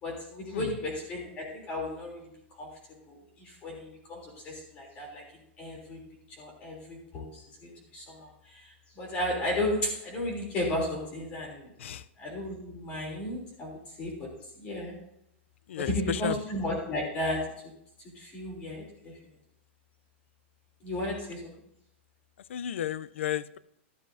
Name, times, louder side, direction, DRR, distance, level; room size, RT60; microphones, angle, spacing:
voice 1, 0.0-2.3 2.6-2.7 3.1-5.2 5.6-6.0 6.4-8.7 8.9-11.7 12.2-14.3 14.6-14.9 15.8-17.4 18.1-19.1 20.8-21.5, left 1 dB, 20° left, -1 dB, 3.2 m, -34 dB
voice 2, 15.7-16.4 22.5-23.6, left 10 dB, 75° left, 18 dB, 0.5 m, -33 dB
14.5 x 12.0 x 2.7 m, 0.78 s
supercardioid pair, 175°, 7 cm